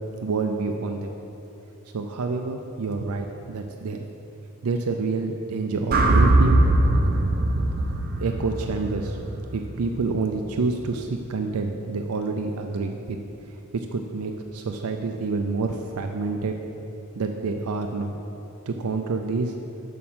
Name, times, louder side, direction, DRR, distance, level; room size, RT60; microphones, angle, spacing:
voice 1, 0.2-1.1 1.9-4.0 4.6-6.6 8.2-9.2 9.5-13.2 13.5-16.6 17.2-18.1 18.7-19.5, right 3 dB, 85° right, 4 dB, 0.5 m, -28 dB
sound 1, 5.9-10.1, right 1 dB, 45° right, 0.6 m, -21 dB
7.2 x 6.0 x 6.1 m, 3.0 s
head